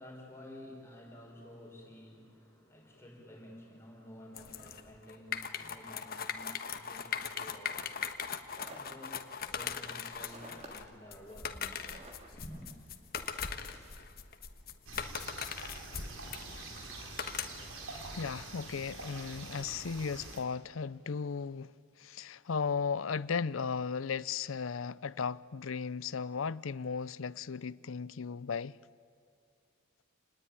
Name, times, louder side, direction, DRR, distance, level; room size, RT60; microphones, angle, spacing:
voice 1, 0.0-8.3 8.6-12.7, equal, 15° left, 4.8 m, -52 dB
sound 1, 4.4-17.8, left 7 dB, 50° left, 1.4 m, -40 dB
sound 2, 8.1-14.9, right 1 dB, 35° right, 3.1 m, -55 dB
sound 3, 14.9-20.4, right 2 dB, 90° right, 4.2 m, -46 dB
voice 2, 17.9-21.7 22.0-28.8, left 5 dB, 90° left, 0.6 m, -36 dB
28.0 x 20.0 x 9.7 m
head